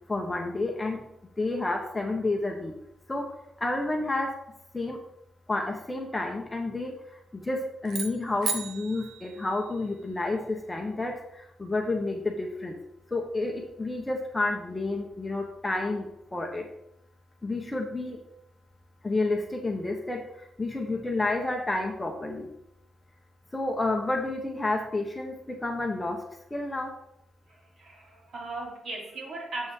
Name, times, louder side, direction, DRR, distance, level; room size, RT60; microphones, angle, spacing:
voice 1, 0.1-1.0 1.4-2.7 3.1-3.3 3.6-4.3 4.7-5.0 5.5-6.9 7.3-11.1 11.6-12.8 13.1-16.6 17.4-18.2 19.0-20.2 20.6-22.5 23.5-26.2 26.5-26.9, left 2 dB, 10° left, 1 dB, 1.0 m, -30 dB
sound 1, 7.9-10.2, right 5 dB, 80° right, 1.1 m, -36 dB
voice 2, 27.5-29.7, right 2 dB, 50° right, -3 dB, 3.2 m, -38 dB
9.6 x 7.6 x 3.7 m, 0.80 s
wide cardioid pair, 180°, 0 cm